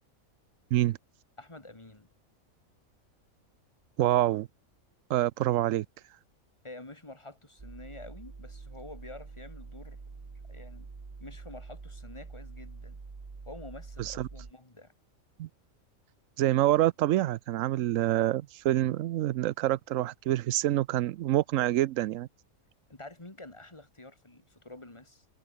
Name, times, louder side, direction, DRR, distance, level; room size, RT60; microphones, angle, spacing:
voice 1, 1.4-2.1 6.6-10.0 10.5-10.9 11.2-13.0 13.4-14.9 17.9-18.3 22.9-25.3, left 2 dB, 20° left, 2.4 m, -48 dB
voice 2, 4.0-4.5 5.1-5.9 14.0-14.3 15.4-15.5 16.4-22.3, right 14 dB, 70° right, 0.9 m, -26 dB
sound 1, 7.6-14.5, right 4 dB, 30° right, 1.3 m, -46 dB
omnidirectional pair, 1.5 m